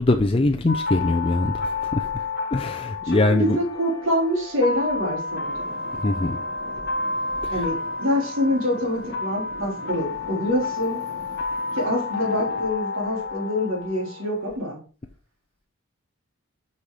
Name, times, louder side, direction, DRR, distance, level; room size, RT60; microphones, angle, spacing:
voice 1, 0.0-2.2 2.5-3.6 6.0-6.4 7.4-7.6, left 2 dB, 25° left, 0.5 m, -22 dB
sound 1, 0.7-14.6, left 3 dB, 50° left, 1.1 m, -30 dB
voice 2, 3.0-5.7 7.5-11.0 11.7-14.8, left 1 dB, 65° right, 3.6 m, -25 dB
Traffic noise roadway noise / Engine, 5.4-12.6, equal, 85° right, 3.8 m, -44 dB
6.8 x 5.6 x 4.8 m
head